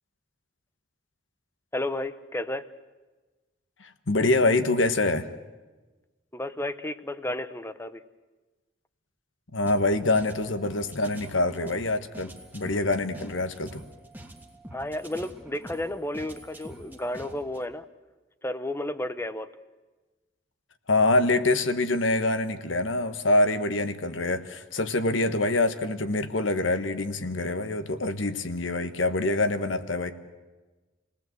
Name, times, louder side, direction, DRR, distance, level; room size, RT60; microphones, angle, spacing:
voice 1, 1.7-2.6 6.3-8.0 14.7-17.8 18.4-19.5, left 1 dB, 15° left, 12 dB, 0.8 m, -32 dB
voice 2, 3.8-5.3 9.5-13.8 20.9-30.1, left 2 dB, 80° left, 10 dB, 1.4 m, -25 dB
sound 1, 9.6-17.6, right 1 dB, 10° right, 1.6 m, -46 dB
28.0 x 19.0 x 7.9 m, 1.2 s
head